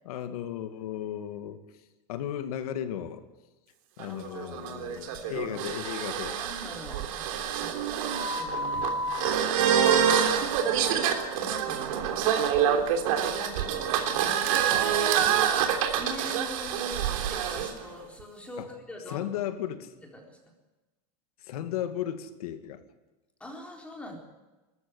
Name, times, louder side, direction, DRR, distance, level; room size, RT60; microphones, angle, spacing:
voice 1, 0.1-1.6 2.1-3.2 4.0-6.4 18.6-18.7 19.1-19.9 21.4-22.8, left 10 dB, 85° left, 8 dB, 2.3 m, -35 dB
voice 2, 4.0-5.5 6.3-7.3 7.5-9.7 10.2-12.4 13.3-15.0 15.9-19.3 20.1-20.4 23.4-24.2, equal, 5° left, 0 dB, 3.9 m, -44 dB
sound 1, 4.0-17.7, right 8 dB, 70° right, 3.3 m, -26 dB
20.5 x 14.0 x 9.6 m, 1.1 s
supercardioid pair, 165°, 18 cm